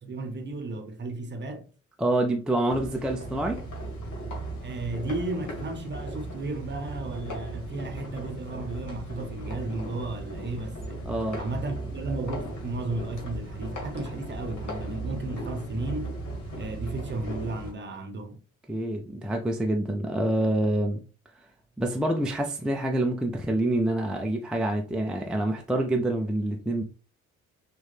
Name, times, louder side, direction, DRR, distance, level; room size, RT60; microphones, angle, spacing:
voice 1, 0.0-1.6 4.6-11.0 11.4-16.2 16.6-18.4, right 2 dB, 25° right, 1.0 m, -34 dB
voice 2, 2.0-3.6 11.0-11.4 18.7-21.0 21.8-26.8, right 1 dB, ahead, 0.5 m, -27 dB
sound 1, 2.7-17.7, right 1 dB, 50° left, 1.6 m, -37 dB
6.3 x 2.4 x 3.4 m
figure-of-eight pair, 45°, 39 cm